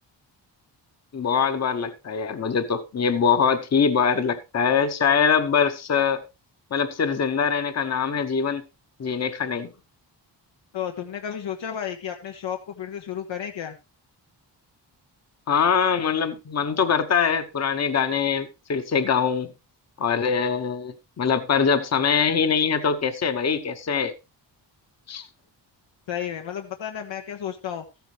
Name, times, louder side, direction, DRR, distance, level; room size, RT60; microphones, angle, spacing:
voice 1, 1.1-6.3 6.7-8.6 9.0-9.7 15.5-19.5 20.0-24.1 25.1-25.3, left 6 dB, 35° left, 0.9 m, -23 dB
voice 2, 10.7-13.7 26.1-27.8, left 9 dB, 90° left, 1.3 m, -32 dB
14.5 x 9.1 x 3.3 m
wide cardioid pair, 170°, 43 cm